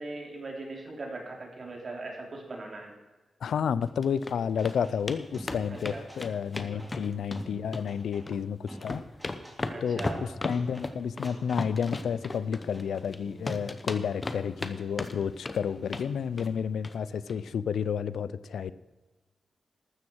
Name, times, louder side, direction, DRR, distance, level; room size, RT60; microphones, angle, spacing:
voice 1, 0.0-2.9 5.7-6.0 6.7-6.8 9.7-10.3, right 2 dB, 40° right, 1 dB, 3.3 m, -40 dB
voice 2, 3.4-9.0 9.8-18.7, left 7 dB, 90° left, 16 dB, 0.5 m, -31 dB
sound 1, 3.8-4.3 4.6-4.8 5.1-5.2 5.5-7.4 7.7-8.4 8.7-13.2 13.5-14.7 15.0-15.6 15.9-16.1 16.4-16.6 16.8-17.0 17.3-17.4, left 2 dB, 25° left, 0.9 m, -35 dB
sound 2, 4.6-5.0 5.3-6.9 7.3-8.3 8.5-9.6 10.0-10.9 11.2-16.5, equal, 5° right, 2.8 m, -48 dB
14.5 x 13.0 x 4.6 m, 1.2 s
wide cardioid pair, 150°, 0 cm